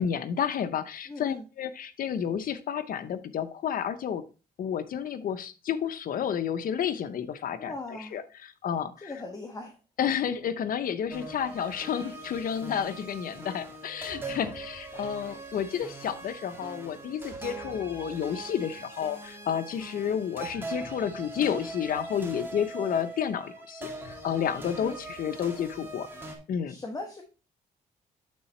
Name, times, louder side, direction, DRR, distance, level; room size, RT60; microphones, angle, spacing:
voice 1, 0.0-4.2 4.6-9.1 10.0-26.1 26.5-26.8, left 8 dB, 65° left, 12 dB, 0.7 m, -31 dB
voice 2, 1.1-1.4 7.6-8.2 9.0-9.7 13.4-13.6 24.8-25.0 26.7-27.2, left 2 dB, 20° left, 3 dB, 1.1 m, -39 dB
sound 1, 11.1-26.4, right 2 dB, 15° right, 2.0 m, -41 dB
8.5 x 4.0 x 4.3 m, 0.33 s
cardioid pair, 100°, 16 cm